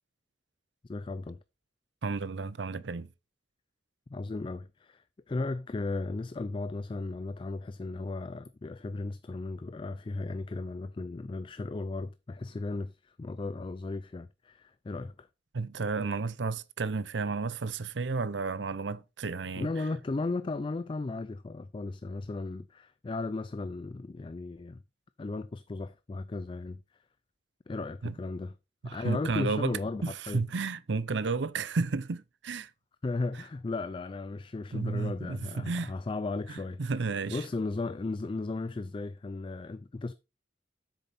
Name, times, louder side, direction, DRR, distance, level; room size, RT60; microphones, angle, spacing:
voice 1, 0.8-1.4 4.1-15.3 19.6-24.8 25.2-26.8 27.7-28.5 28.8-30.4 33.0-40.1, left 3 dB, 30° left, 0.3 m, -36 dB
voice 2, 2.0-3.1 15.5-19.7 28.0-28.1 28.8-32.7 34.7-35.9 36.8-37.4, right 4 dB, 85° right, 0.6 m, -32 dB
8.0 x 6.6 x 4.3 m
head